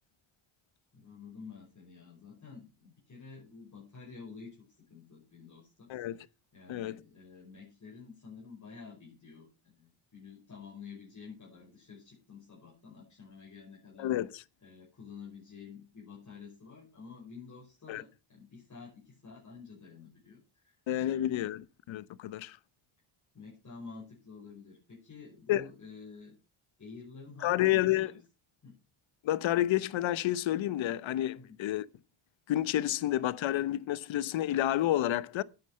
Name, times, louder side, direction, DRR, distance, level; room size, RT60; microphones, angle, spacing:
voice 1, 0.9-6.3 6.5-14.1 14.6-21.5 23.3-26.4 26.8-28.2 28.6-28.8 31.3-31.6, left 5 dB, 35° left, 5.5 m, -50 dB
voice 2, 5.9-6.3 6.7-7.0 14.0-14.4 17.9-18.0 20.9-22.6 25.5-25.7 27.4-28.1 29.2-31.9 32.5-35.4, left 13 dB, 65° left, 1.0 m, -30 dB
9.7 x 9.7 x 5.6 m
cardioid pair, 85°, 50 cm